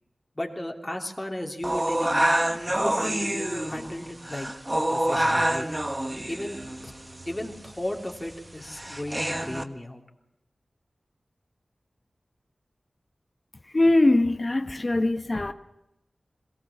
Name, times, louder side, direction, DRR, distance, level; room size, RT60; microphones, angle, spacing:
voice 1, 0.4-2.3 2.7-4.5 4.7-5.7 6.3-6.6 6.8-6.9 7.2-10.0, left 1 dB, 20° left, 3.1 m, -35 dB
sound 1, 1.6-9.6, right 1 dB, 20° right, 1.3 m, -27 dB
voice 2, 13.6-15.5, left 2 dB, 45° left, 1.1 m, -22 dB
21.5 x 18.0 x 7.3 m
cardioid pair, 50°, 0 cm